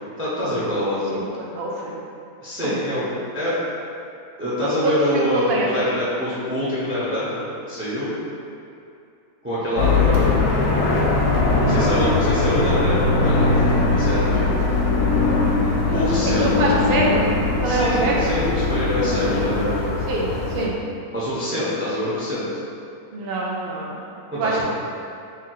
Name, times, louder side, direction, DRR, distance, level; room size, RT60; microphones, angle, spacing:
voice 1, 0.2-1.2 2.4-3.1 3.3-3.6 4.4-8.1 9.4-10.4 11.7-14.6 15.9-16.7 17.6-19.9 21.1-22.5 24.3-24.6, equal, 15° right, -10 dB, 0.5 m, -25 dB
voice 2, 1.1-2.0 2.6-2.8 4.8-5.9 11.6-11.8 15.8-16.0 16.4-17.3 17.6-18.3 20.1-20.7 23.1-24.6, right 2 dB, 65° right, -3 dB, 0.6 m, -25 dB
sound 1, 9.8-20.7, left 3 dB, 80° left, 1.1 m, -20 dB
3.4 x 2.3 x 4.4 m, 2.6 s
omnidirectional pair, 1.6 m